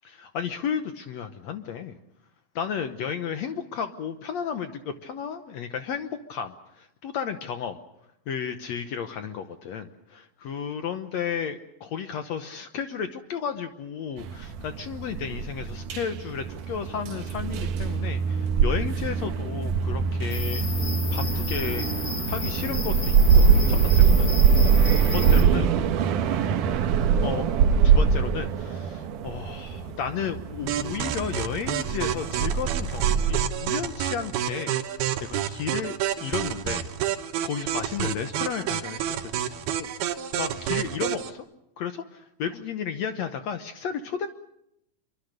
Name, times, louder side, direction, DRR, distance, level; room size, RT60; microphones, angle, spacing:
voice 1, 0.0-2.0 2.5-7.8 8.3-24.3 25.0-25.7 27.2-27.5 27.8-36.8 37.4-41.4 41.8-44.3, left 7 dB, 70° left, 8 dB, 1.7 m, -33 dB
sound 1, 14.2-33.5, right 6 dB, 65° right, 2.5 m, -23 dB
sound 2, 20.3-25.4, left 4 dB, 35° left, 4.8 m, -32 dB
sound 3, 30.7-41.3, right 10 dB, 85° right, 3.1 m, -29 dB
26.0 x 23.5 x 6.7 m, 0.80 s
omnidirectional pair, 4.3 m